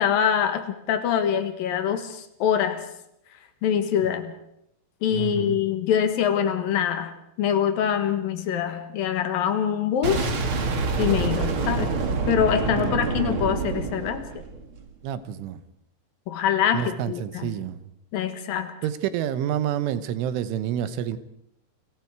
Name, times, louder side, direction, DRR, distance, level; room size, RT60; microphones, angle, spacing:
voice 1, 0.0-2.8 3.6-4.3 5.0-10.3 11.0-11.9 12.3-14.4 16.3-17.5 18.1-18.7, left 9 dB, 60° left, 8 dB, 2.8 m, -24 dB
voice 2, 5.1-5.6 12.7-13.1 15.0-15.6 16.7-17.9 18.8-21.2, right 10 dB, 85° right, 13 dB, 3.6 m, -29 dB
Boom, 10.0-14.9, right 4 dB, 55° right, 1.5 m, -26 dB
30.0 x 22.5 x 4.7 m, 0.79 s
omnidirectional pair, 5.4 m